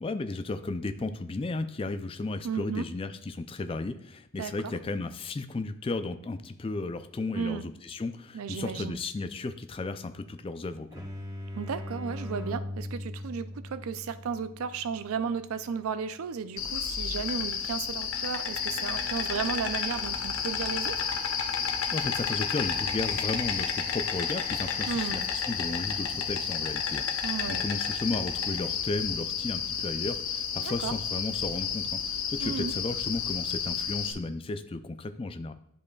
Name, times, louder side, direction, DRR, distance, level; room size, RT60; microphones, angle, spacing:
voice 1, 0.0-11.0 21.9-35.5, left 3 dB, 25° left, 9 dB, 0.3 m, -34 dB
voice 2, 2.4-2.8 4.4-4.7 7.3-7.7 8.3-9.0 11.5-21.1 24.9-25.3 27.2-27.6 30.6-30.9 32.4-32.7, right 6 dB, 90° right, 12 dB, 0.4 m, -34 dB
sound 1, 10.9-16.4, left 1 dB, 15° right, 0.9 m, -40 dB
Insect, 16.6-34.1, left 6 dB, 75° left, 0.7 m, -31 dB
10.5 x 5.1 x 2.3 m, 0.73 s
head